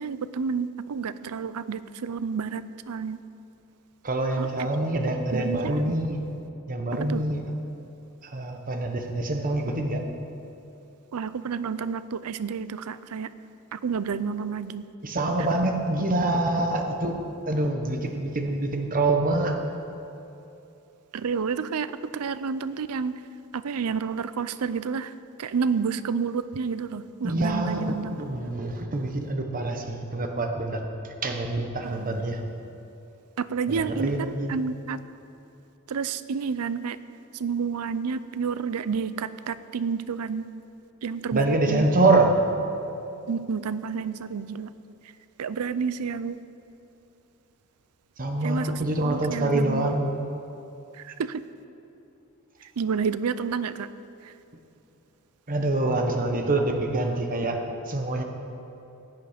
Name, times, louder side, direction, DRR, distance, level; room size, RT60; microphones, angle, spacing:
voice 1, 0.0-3.2 4.4-4.7 5.3-5.9 6.9-7.2 11.1-13.3 13.7-14.9 21.1-23.2 23.5-25.1 25.4-28.3 31.8-32.2 33.4-35.0 35.9-37.0 37.3-40.5 41.0-41.9 43.3-44.7 45.4-46.4 48.4-49.9 50.9-51.4 52.8-53.9 54.2-54.3, right 5 dB, 85° right, 14 dB, 0.5 m, -30 dB
voice 2, 4.0-6.2 6.7-7.4 8.2-10.0 15.0-17.2 17.5-19.5 27.2-30.8 31.2-32.4 33.7-34.5 41.3-42.3 48.2-50.1 55.5-57.6 57.9-58.2, right 2 dB, 40° right, 4 dB, 1.1 m, -25 dB
16.5 x 9.2 x 5.1 m, 2.8 s
head